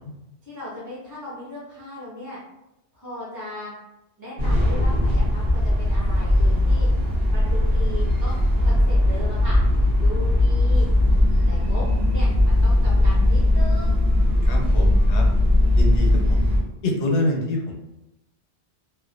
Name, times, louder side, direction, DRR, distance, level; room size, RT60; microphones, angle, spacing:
voice 1, 0.4-2.4 2.9-3.7 4.2-6.9 7.3-9.6 9.9-10.9 11.5-11.8 12.1-14.0, left 1 dB, 25° left, -8 dB, 0.4 m, -37 dB
sound 1, 4.4-16.6, left 1 dB, 65° right, 0.9 m, -19 dB
voice 2, 6.5-6.9 14.4-15.2 15.8-16.5 16.8-17.7, left 1 dB, 90° left, 1 dB, 0.9 m, -26 dB
2.3 x 2.1 x 2.4 m, 0.93 s
omnidirectional pair, 1.1 m